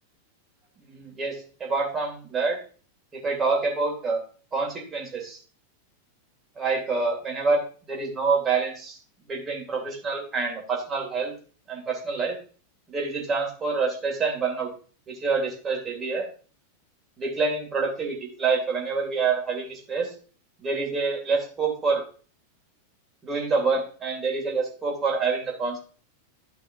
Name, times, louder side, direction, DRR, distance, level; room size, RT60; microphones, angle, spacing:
voice 1, 0.9-1.3 1.6-2.6 3.1-4.2 4.5-5.4 6.6-7.6 7.9-9.0 9.3-11.3 11.7-12.4 12.9-14.7 15.1-16.2 17.2-20.1 20.6-22.0 23.2-25.8, right 4 dB, 20° right, 0 dB, 2.5 m, -27 dB
11.5 x 5.5 x 2.7 m, 0.40 s
figure-of-eight pair, 90°, 0 cm